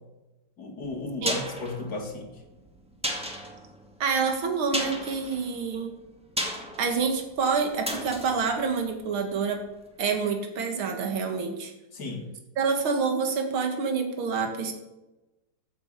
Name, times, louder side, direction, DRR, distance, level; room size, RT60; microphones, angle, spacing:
voice 1, 0.6-2.3 11.9-12.3, left 3 dB, 50° left, 2 dB, 2.7 m, -34 dB
sound 1, 0.8-9.7 10.0-10.1, equal, 5° right, 1.7 m, -36 dB
voice 2, 4.0-5.9 6.8-9.6 10.0-11.7 12.6-14.7, right 5 dB, 75° right, 4 dB, 2.6 m, -27 dB
13.5 x 7.4 x 8.3 m, 1.0 s
omnidirectional pair, 2.3 m